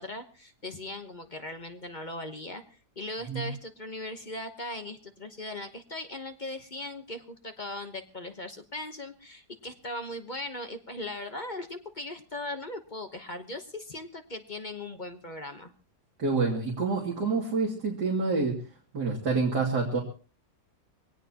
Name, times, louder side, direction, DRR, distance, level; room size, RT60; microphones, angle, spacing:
voice 1, 0.0-2.6 3.0-15.7, left 1 dB, 30° left, 6 dB, 1.2 m, -39 dB
voice 2, 16.2-18.6 18.9-20.0, right 4 dB, 75° right, -2 dB, 3.2 m, -27 dB
22.5 x 17.5 x 2.9 m, 0.37 s
omnidirectional pair, 1.7 m